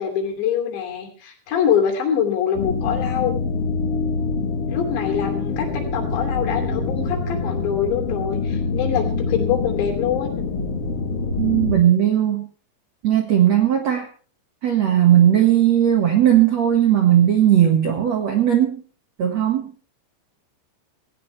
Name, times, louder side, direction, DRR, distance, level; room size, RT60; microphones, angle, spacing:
voice 1, 0.0-3.3 4.7-10.5, left 8 dB, 65° left, 4 dB, 4.9 m, -24 dB
sound 1, 2.5-11.8, left 4 dB, 50° left, 1.9 m, -25 dB
voice 2, 11.3-12.5 13.0-14.1 14.6-18.8 19.2-19.7, right 11 dB, 75° right, 4 dB, 1.5 m, -17 dB
18.5 x 17.5 x 3.3 m, 0.39 s
omnidirectional pair, 5.8 m